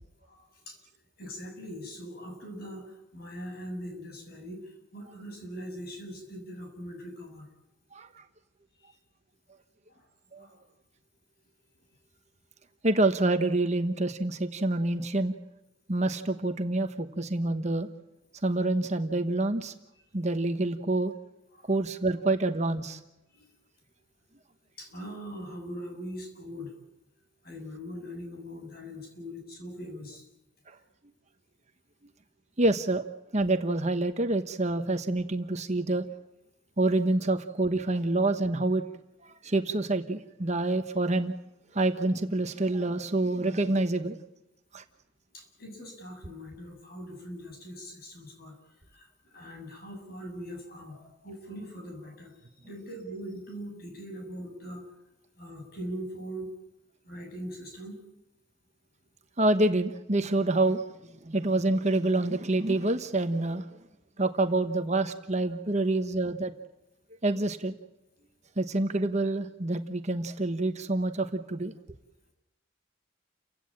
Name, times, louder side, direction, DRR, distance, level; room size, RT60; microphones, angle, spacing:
voice 1, 0.2-0.8 1.2-7.5 8.9-9.0 9.9-10.1 10.4-10.6 21.5-21.7 23.3-23.5 24.8-26.7 27.4-30.2 45.3-48.5 48.9-52.3 52.6-54.8 55.4-56.5 57.0-58.0, equal, 50° left, 3 dB, 7.4 m, -41 dB
voice 2, 7.9-8.2 10.3-10.5 12.8-15.3 15.9-17.9 18.4-19.7 20.1-21.1 21.7-23.0 30.7-30.8 32.6-33.1 33.3-36.1 36.8-38.8 39.2-41.3 41.7-44.2 44.7-44.8 59.4-63.8 64.2-66.5 67.2-67.7 68.6-71.7, right 2 dB, 35° right, 8 dB, 1.1 m, -27 dB
30.0 x 16.5 x 8.9 m, 0.92 s
head